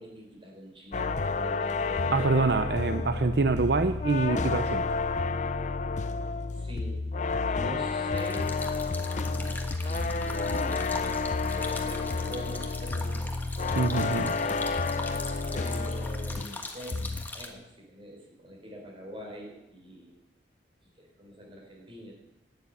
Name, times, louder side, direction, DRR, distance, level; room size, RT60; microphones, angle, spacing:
voice 1, 0.0-2.5 6.6-7.0 7.5-8.6 9.8-11.2 11.5-13.3 14.4-14.6 15.5-20.1 21.0-22.1, equal, 30° right, 0 dB, 4.9 m, -44 dB
sound 1, 0.9-16.6 16.9-17.4, left 3 dB, 45° left, 0.5 m, -30 dB
voice 2, 2.1-4.8 13.8-14.4, right 3 dB, 65° right, 9 dB, 0.6 m, -25 dB
sound 2, 8.2-17.5, left 2 dB, 10° left, 1.5 m, -41 dB
12.5 x 9.7 x 9.1 m, 0.96 s
head